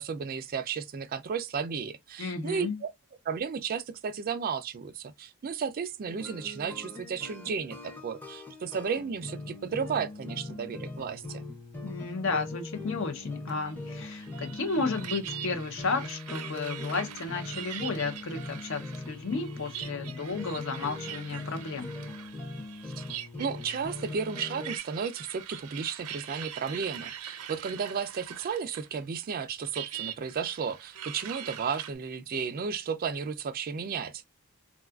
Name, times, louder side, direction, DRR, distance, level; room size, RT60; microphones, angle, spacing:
voice 1, 0.0-2.9 3.3-11.4 22.8-23.0 23.4-34.3, right 6 dB, 40° right, 0.3 m, -33 dB
voice 2, 2.2-2.8 11.8-21.9, left 4 dB, 60° left, 0.6 m, -33 dB
sound 1, 6.1-24.8, left 2 dB, 10° left, 0.6 m, -41 dB
sound 2, 13.5-28.9 29.2-31.9, right 10 dB, 90° right, 0.6 m, -43 dB
3.6 x 2.3 x 2.2 m
head